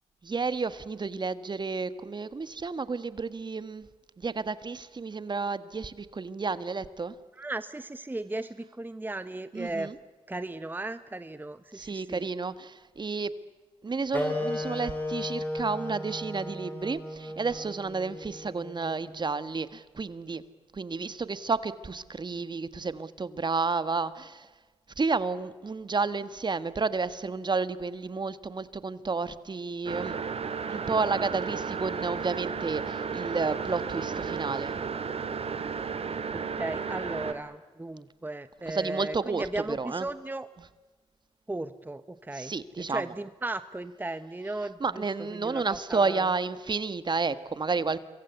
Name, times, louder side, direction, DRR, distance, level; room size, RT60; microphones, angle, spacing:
voice 1, 0.2-3.9 4.2-7.1 9.5-10.0 11.7-13.3 13.8-20.4 20.7-24.5 25.0-30.2 30.7-34.8 38.7-40.1 42.3-43.0 44.8-48.0, right 4 dB, 40° right, 14 dB, 1.6 m, -31 dB
voice 2, 7.4-9.9 10.3-12.3 36.3-40.5 41.5-42.5 42.8-45.0 45.3-46.3, right 2 dB, 15° right, 12 dB, 1.1 m, -36 dB
Wind instrument woodwind instrument, 14.1-19.2, left 1 dB, 15° left, 7.2 m, -35 dB
sound 1, 29.9-37.3, right 6 dB, 55° right, 2.6 m, -33 dB
27.0 x 23.0 x 8.2 m, 1.3 s
supercardioid pair, 55°, 12 cm